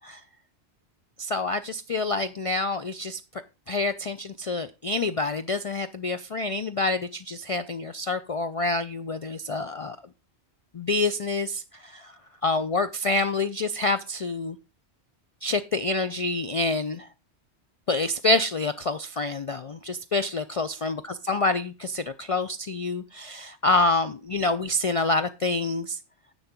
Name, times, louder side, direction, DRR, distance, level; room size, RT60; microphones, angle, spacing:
voice 1, 1.2-3.2 3.7-10.0 10.7-12.1 12.4-14.6 15.4-17.1 17.9-26.0, left 2 dB, 55° left, 0.4 m, -27 dB
10.5 x 3.9 x 7.3 m
omnidirectional pair, 1.2 m